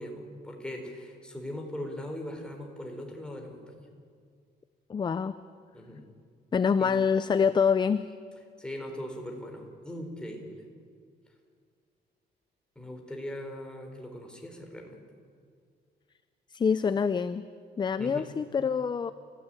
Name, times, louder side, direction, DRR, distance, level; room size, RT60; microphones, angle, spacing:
voice 1, 0.0-3.9 5.7-6.1 6.8-6.9 8.6-10.6 12.8-15.0 18.0-18.3, left 1 dB, 5° left, 2 dB, 4.2 m, -40 dB
voice 2, 4.9-5.4 6.5-8.1 16.5-17.5 17.8-19.1, left 6 dB, 25° left, 13 dB, 0.5 m, -26 dB
29.5 x 15.0 x 9.0 m, 2.2 s
cardioid pair, 140°, 18 cm